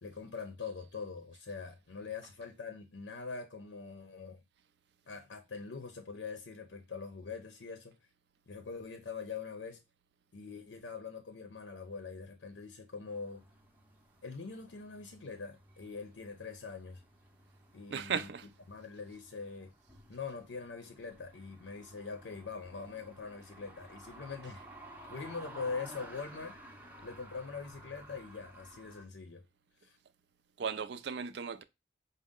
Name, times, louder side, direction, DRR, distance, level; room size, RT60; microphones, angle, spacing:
voice 1, 0.0-4.4 5.1-7.9 8.5-9.8 10.3-13.4 14.2-17.0 17.7-18.3 18.7-19.7 20.1-24.6 25.1-26.5 27.0-29.5 29.8-30.0, left 5 dB, 80° left, 0.6 m, -43 dB
sound 1, 13.1-29.1, right 1 dB, 10° right, 0.5 m, -54 dB
voice 2, 17.9-18.5 30.6-31.6, right 6 dB, 65° right, 0.4 m, -36 dB
5.1 x 2.1 x 3.6 m
head